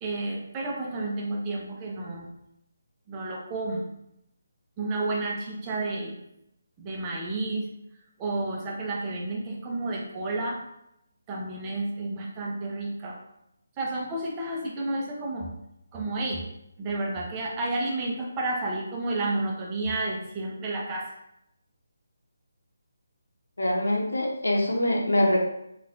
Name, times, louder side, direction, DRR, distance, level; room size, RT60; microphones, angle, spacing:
voice 1, 0.0-2.3 3.1-3.8 4.8-6.2 6.8-7.7 8.2-10.6 11.3-13.2 13.8-15.5 15.9-16.4 16.8-21.1, right 2 dB, 20° right, -2 dB, 0.6 m, -31 dB
voice 2, 23.6-25.4, left 1 dB, 85° left, 0 dB, 0.8 m, -24 dB
4.0 x 2.4 x 2.5 m, 0.80 s
figure-of-eight pair, 155°, 0 cm